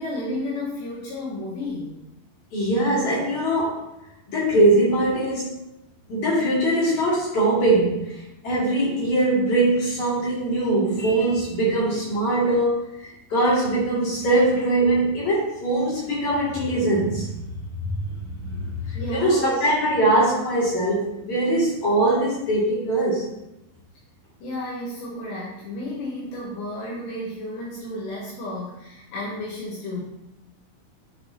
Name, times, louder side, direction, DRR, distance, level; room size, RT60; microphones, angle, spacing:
voice 1, 0.0-1.9 19.0-19.7 24.4-30.0, left 1 dB, 70° left, -5 dB, 3.1 m, -32 dB
voice 2, 2.5-3.8 4.3-5.6 6.1-12.8 13.3-17.3 18.4-23.3, right 1 dB, 45° left, -8 dB, 3.1 m, -22 dB
10.5 x 5.4 x 2.8 m, 0.88 s
omnidirectional pair, 5.5 m